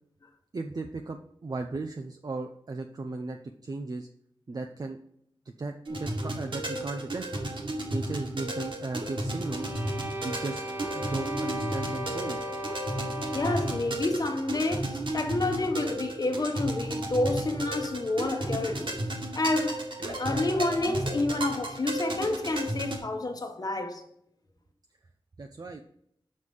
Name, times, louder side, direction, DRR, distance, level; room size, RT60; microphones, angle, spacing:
voice 1, 0.5-4.1 4.5-5.0 5.6-7.3 7.9-9.7 10.2-10.6 10.9-12.4 25.4-25.8, right 3 dB, 45° right, 0.6 m, -36 dB
sound 1, 5.9-23.0, right 1 dB, 65° right, 1.7 m, -34 dB
sound 2, 9.3-14.1, equal, 25° right, 1.4 m, -37 dB
voice 2, 13.3-19.0 19.4-24.0, left 2 dB, 45° left, 1.1 m, -29 dB
6.5 x 4.9 x 5.3 m
wide cardioid pair, 90°, 9 cm